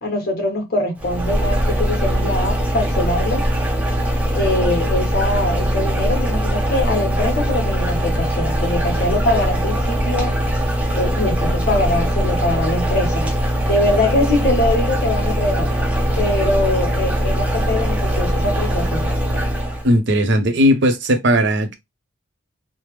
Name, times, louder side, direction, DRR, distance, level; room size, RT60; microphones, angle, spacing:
voice 1, 0.0-3.5 4.3-10.3 10.9-13.3 13.7-15.7 16.2-19.1, left 1 dB, 50° left, 1.3 m, -22 dB
sound 1, 1.0-19.9, equal, 5° right, 0.6 m, -21 dB
voice 2, 19.8-21.7, equal, 55° right, 0.6 m, -16 dB
3.3 x 2.0 x 2.9 m
head